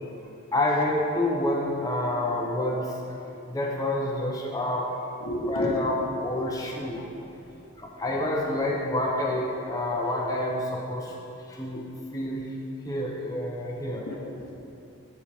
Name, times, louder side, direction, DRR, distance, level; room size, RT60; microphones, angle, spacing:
voice 1, 0.5-3.2 3.5-4.9 5.5-7.1 7.8-11.2 11.5-11.8 12.1-12.4 12.8-14.1, left 1 dB, 15° left, -2 dB, 0.6 m, -28 dB
voice 2, 5.2-5.9 6.4-6.5 13.9-14.5, equal, 65° left, 0 dB, 1.0 m, -32 dB
7.9 x 7.3 x 3.4 m, 2.9 s
head